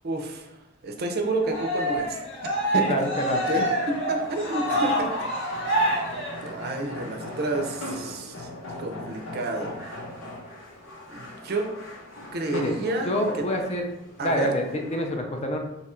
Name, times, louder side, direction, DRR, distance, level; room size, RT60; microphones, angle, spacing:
voice 1, 0.0-0.5 0.8-2.2 2.7-2.8 3.5-5.1 6.4-8.5 8.8-9.8 11.1-11.7 12.3-13.1 13.3-13.4 14.2-14.5, right 2 dB, 50° right, 3 dB, 0.5 m, -29 dB
sound 1, 1.3-15.1, left 1 dB, 85° left, 0.8 m, -40 dB
Cheering, 1.4-6.9, equal, 70° left, 1.1 m, -27 dB
voice 2, 2.7-3.4 12.5-12.8 13.1-13.9 14.2-15.6, equal, 30° left, 3 dB, 0.4 m, -26 dB
2.9 x 2.4 x 4.2 m, 0.95 s
head